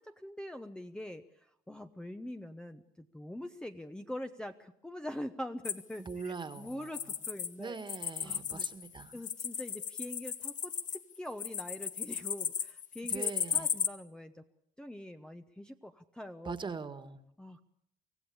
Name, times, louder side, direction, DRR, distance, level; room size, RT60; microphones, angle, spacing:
voice 1, 0.0-7.8 8.2-8.7 9.1-14.4 14.8-16.6 17.4-17.6, left 1 dB, 5° left, 7 dB, 0.9 m, -44 dB
sound 1, 5.6-7.5 7.8-13.9, left 8 dB, 50° left, 1.2 m, -35 dB
voice 2, 6.0-6.9 7.6-9.1 13.1-13.7 16.4-17.2, right 5 dB, 30° right, 11 dB, 1.8 m, -41 dB
25.0 x 15.5 x 8.7 m, 0.73 s
cardioid pair, 110°, 17 cm